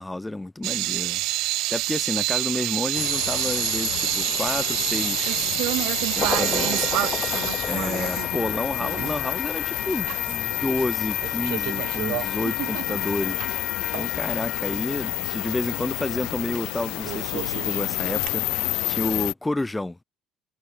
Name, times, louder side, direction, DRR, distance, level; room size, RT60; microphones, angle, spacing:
voice 1, 0.0-5.6 6.1-6.9 7.7-13.5 13.9-20.0, left 2 dB, 10° left, 2.3 m, -30 dB
sound 1, 0.6-9.2 9.5-9.6 10.1-10.8 11.1-13.5 13.9-14.1 16.6-16.7 17.0-18.3, right 19 dB, 75° right, 2.4 m, -28 dB
sound 2, 2.9-19.3, left 22 dB, 80° left, 2.0 m, -29 dB
sound 3, 6.2-17.3, left 6 dB, 35° left, 1.8 m, -34 dB
supercardioid pair, 85°, 0 cm